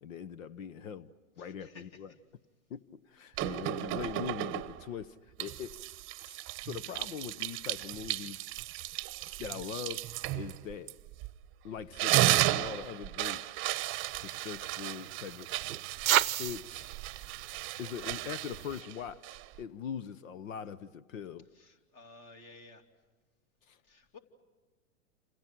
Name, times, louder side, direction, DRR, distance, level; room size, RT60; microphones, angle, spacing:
voice 1, 0.0-1.1 1.4-2.1 2.7-5.7 6.2-8.5 9.4-10.1 10.3-10.9 11.6-13.4 14.2-15.7 16.4-16.9 17.8-21.5 23.7-23.8, left 8 dB, 70° left, 19 dB, 1.0 m, -42 dB
voice 2, 1.4-2.0 21.5-22.8 23.8-24.2, left 3 dB, 35° left, 5 dB, 2.9 m, -54 dB
sound 1, 3.4-4.9 5.4-11.5 11.8-19.6, right 16 dB, 30° right, 0.9 m, -34 dB
sound 2, 13.7-18.8, right 12 dB, 80° right, 0.7 m, -35 dB
28.5 x 28.0 x 6.0 m, 1.3 s
hypercardioid pair, 110°, 41 cm